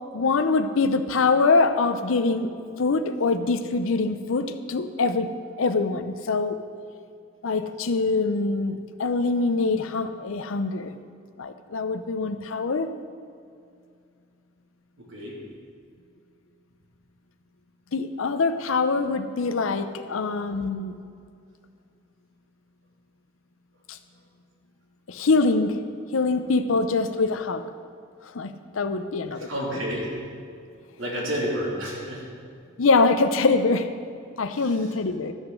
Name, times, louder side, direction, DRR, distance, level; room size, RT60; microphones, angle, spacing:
voice 1, 0.1-5.3 5.6-6.6 7.4-10.9 11.4-12.9 17.9-20.9 23.9-24.0 25.1-25.7 26.1-27.6 28.3-29.5 32.8-33.9 34.4-35.3, left 3 dB, 80° left, 10 dB, 0.6 m, -24 dB
voice 2, 15.0-15.4 20.1-20.2 26.7-26.9 29.5-30.1 31.0-32.2 34.6-34.7, equal, 70° right, -4 dB, 3.1 m, -30 dB
13.0 x 6.4 x 6.2 m, 2.3 s
head